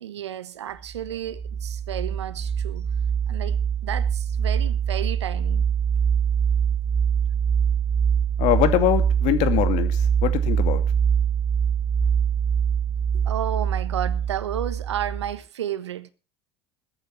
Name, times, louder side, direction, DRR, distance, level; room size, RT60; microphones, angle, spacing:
voice 1, 0.0-2.9 3.3-5.7 13.1-16.1, right 11 dB, 85° right, 1.2 m, -32 dB
sound 1, 0.9-15.4, right 7 dB, 10° right, 1.5 m, -23 dB
voice 2, 8.4-10.8, left 12 dB, 60° left, 2.5 m, -23 dB
21.5 x 8.8 x 4.6 m
hypercardioid pair, 70°, 14 cm